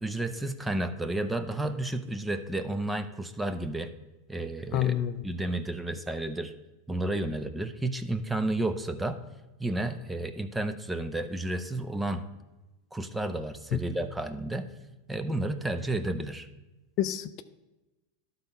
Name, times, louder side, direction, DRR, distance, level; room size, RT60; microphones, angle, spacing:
voice 1, 0.0-3.9 4.3-5.0 5.2-6.5 6.9-9.2 9.6-12.3 12.9-14.7 15.1-16.5, right 2 dB, 10° right, 10 dB, 0.7 m, -31 dB
voice 2, 4.7-5.1 13.7-13.8 17.0-17.4, left 11 dB, 50° left, 11 dB, 0.5 m, -27 dB
11.5 x 4.0 x 5.5 m, 1.1 s
hypercardioid pair, 100°, 0 cm